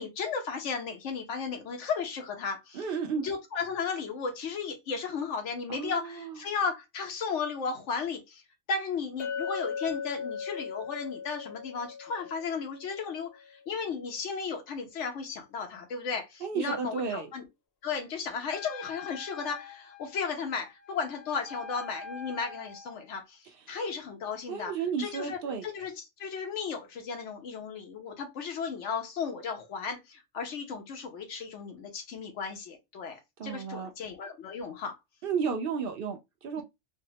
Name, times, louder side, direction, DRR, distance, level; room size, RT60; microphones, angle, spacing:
voice 1, 0.0-2.8 3.2-8.4 8.7-17.4 17.8-23.4 23.7-24.7 25.0-25.9 26.2-35.0, left 5 dB, 90° left, 1.1 m, -35 dB
voice 2, 2.7-3.2 5.7-6.4 16.4-17.3 24.5-25.7 33.4-33.9 35.2-36.6, right 6 dB, 60° right, 0.7 m, -33 dB
Chink clink, 9.2-13.4, left 6 dB, 65° left, 0.7 m, -38 dB
Wind instrument woodwind instrument, 18.5-23.0, left 4 dB, 30° left, 0.6 m, -45 dB
3.4 x 2.0 x 2.7 m
omnidirectional pair, 1.2 m